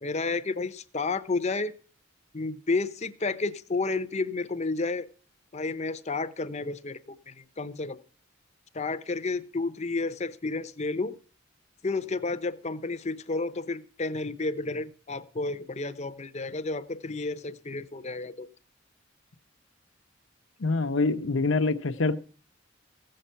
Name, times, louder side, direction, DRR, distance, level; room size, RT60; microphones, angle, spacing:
voice 1, 0.0-1.7 2.3-5.1 5.5-7.0 7.3-8.0 8.7-11.1 11.8-18.5, left 3 dB, 35° left, 0.7 m, -31 dB
voice 2, 20.6-22.2, left 3 dB, 70° left, 0.9 m, -25 dB
15.5 x 7.7 x 5.6 m
head